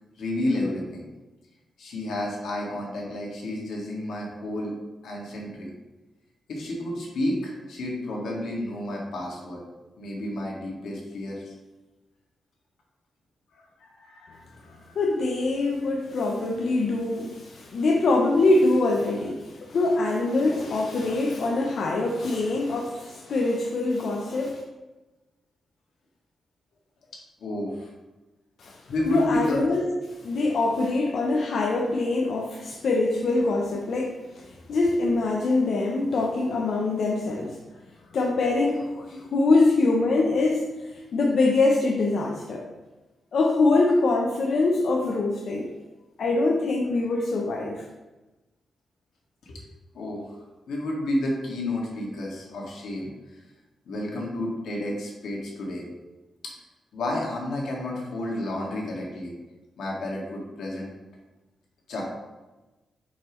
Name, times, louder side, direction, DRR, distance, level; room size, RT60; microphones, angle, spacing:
voice 1, 0.2-1.0 1.8-4.7 5.0-5.7 6.5-9.6 10.0-11.5 13.5-15.0 27.4-27.9 28.9-29.7 49.5-49.6 49.9-50.4 50.7-53.4 53.9-55.9 56.9-59.3 59.8-60.9 61.9-62.0, left 1 dB, 85° left, -2 dB, 1.9 m, -31 dB
voice 2, 14.9-24.6 28.6-28.8 29.0-29.9 30.2-37.6 38.1-42.7 43.3-45.7 46.2-47.8, left 2 dB, 60° left, 0 dB, 0.7 m, -24 dB
7.0 x 5.6 x 3.1 m, 1.1 s
wide cardioid pair, 135°, 0 cm